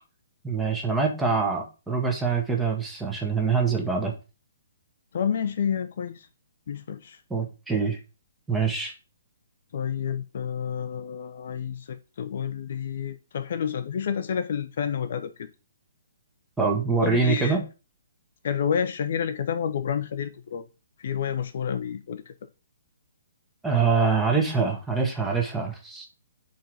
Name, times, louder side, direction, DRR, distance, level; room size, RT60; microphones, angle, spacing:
voice 1, 0.4-4.1 7.3-8.0 8.5-8.9 16.6-17.6 23.6-26.1, right 5 dB, 5° right, 1.4 m, -24 dB
voice 2, 5.1-6.3 6.7-7.2 9.7-15.5 17.0-17.6 18.4-20.6 21.0-22.3, left 7 dB, 45° left, 0.6 m, -29 dB
5.2 x 4.5 x 5.9 m
figure-of-eight pair, 125°, 0 cm